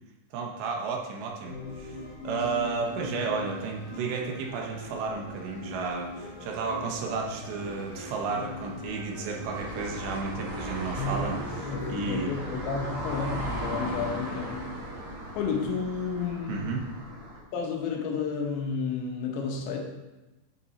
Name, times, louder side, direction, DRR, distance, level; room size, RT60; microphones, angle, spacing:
voice 1, 0.3-12.4 16.5-16.8, right 4 dB, 80° right, 0 dB, 3.3 m, -33 dB
sound 1, 1.4-12.9, left 2 dB, 60° left, 2.3 m, -41 dB
sound 2, 9.5-17.4, right 1 dB, 45° right, 3.0 m, -36 dB
voice 2, 11.0-14.7 15.4-16.7 17.5-19.8, left 5 dB, 80° left, 1 dB, 3.4 m, -31 dB
10.0 x 6.1 x 4.1 m, 1.1 s
omnidirectional pair, 5.1 m